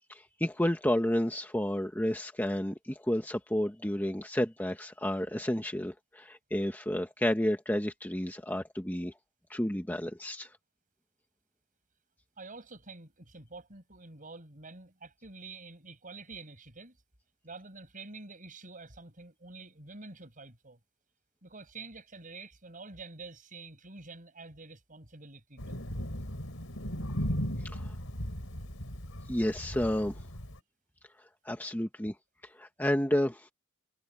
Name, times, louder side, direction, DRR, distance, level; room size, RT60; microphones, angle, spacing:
voice 1, 0.1-9.1 9.5-10.5 27.7-27.9 29.3-30.2 31.4-32.1 32.5-33.5, left 1 dB, 10° left, 1.2 m, -31 dB
voice 2, 12.4-17.0 17.4-20.8 21.4-25.9, right 3 dB, 40° right, 6.7 m, -48 dB
Thunder, 25.6-30.6, equal, 65° left, 5.3 m, -37 dB
head